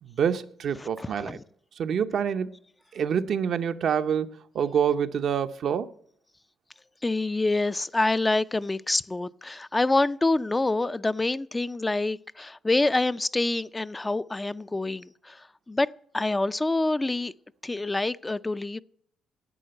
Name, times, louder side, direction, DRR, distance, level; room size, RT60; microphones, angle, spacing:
voice 1, 0.0-1.4 1.8-2.6 2.9-4.3 4.5-5.9, right 7 dB, 65° right, 0.7 m, -26 dB
voice 2, 0.8-1.4 7.0-17.3 17.6-18.8, left 2 dB, 15° left, 0.4 m, -26 dB
11.0 x 8.7 x 7.7 m
cardioid pair, 90°, 0 cm